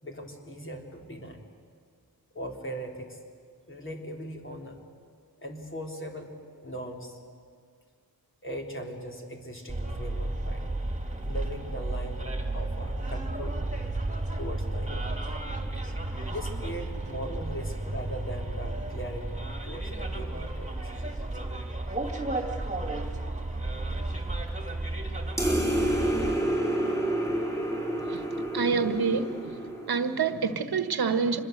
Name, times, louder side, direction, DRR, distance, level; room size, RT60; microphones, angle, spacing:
voice 1, 0.0-1.4 2.3-3.2 3.7-4.8 5.4-6.3 6.6-7.2 8.4-10.7 11.2-12.2 12.5-13.7 14.4-15.2 16.3-20.9, equal, 30° left, 2 dB, 3.7 m, -39 dB
Bus, 9.7-26.4, right 2 dB, 20° right, 2.7 m, -33 dB
sound 1, 25.4-30.2, right 1 dB, 10° left, 4.8 m, -29 dB
voice 2, 28.5-29.3 29.9-31.4, right 5 dB, 75° right, 10 dB, 1.3 m, -26 dB
26.5 x 21.0 x 8.0 m, 2.1 s
wide cardioid pair, 80°, 37 cm